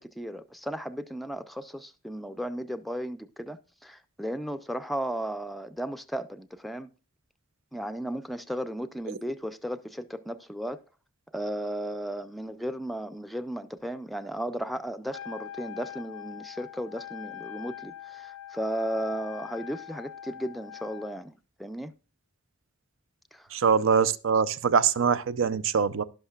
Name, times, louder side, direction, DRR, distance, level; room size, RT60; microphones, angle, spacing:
voice 1, 0.0-6.9 7.7-10.8 11.3-21.9 23.3-23.5, equal, ahead, 0.4 m, -35 dB
Wind instrument woodwind instrument, 15.1-21.3, left 10 dB, 85° left, 0.5 m, -43 dB
voice 2, 23.5-26.0, right 6 dB, 65° right, 0.5 m, -23 dB
17.0 x 5.8 x 2.3 m
head